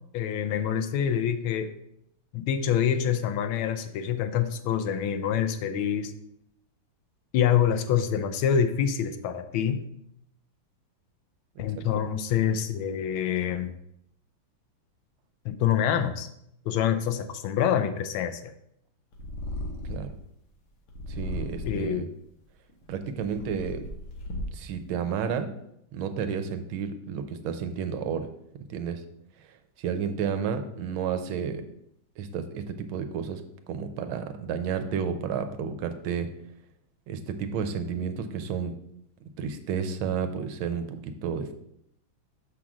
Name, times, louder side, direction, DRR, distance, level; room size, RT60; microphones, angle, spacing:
voice 1, 0.1-1.7 2.3-6.1 7.3-9.8 11.6-13.7 15.4-16.3 16.7-18.4 21.6-22.0, left 9 dB, 85° left, 9 dB, 1.4 m, -26 dB
Purr, 19.1-20.2 20.9-22.0 22.7-24.8, left 1 dB, 60° left, 1.7 m, -36 dB
voice 2, 21.1-22.1 22.9-23.8 24.5-25.5 25.9-28.3 28.7-29.0 29.8-31.6 32.2-33.4 33.7-36.3 37.1-38.8 39.4-41.5, right 7 dB, 85° right, 8 dB, 1.5 m, -31 dB
5.9 x 3.7 x 6.1 m, 0.76 s
omnidirectional pair, 2.2 m